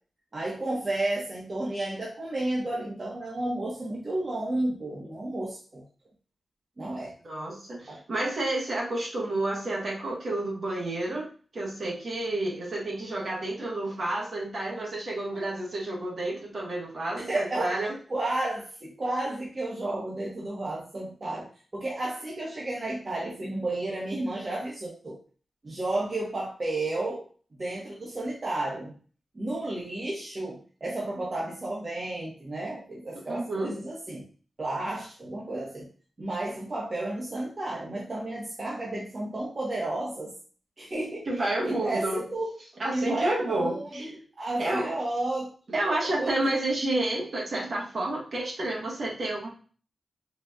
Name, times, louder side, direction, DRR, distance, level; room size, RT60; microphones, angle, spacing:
voice 1, 0.3-5.8 6.8-7.1 7.9-8.0 17.1-17.8 18.1-21.5 21.7-25.2 25.6-27.2 27.6-28.9 29.3-34.3 34.6-35.9 36.2-40.3 40.8-42.5 42.9-44.1 44.4-46.3, right 2 dB, 50° right, -5 dB, 1.0 m, -32 dB
voice 2, 7.2-18.0 33.3-33.7 41.3-42.2 42.8-44.2 44.6-44.9 45.7-49.5, right 2 dB, 65° right, -3 dB, 1.3 m, -30 dB
3.9 x 2.6 x 2.3 m, 0.40 s
cardioid pair, 55°, 0 cm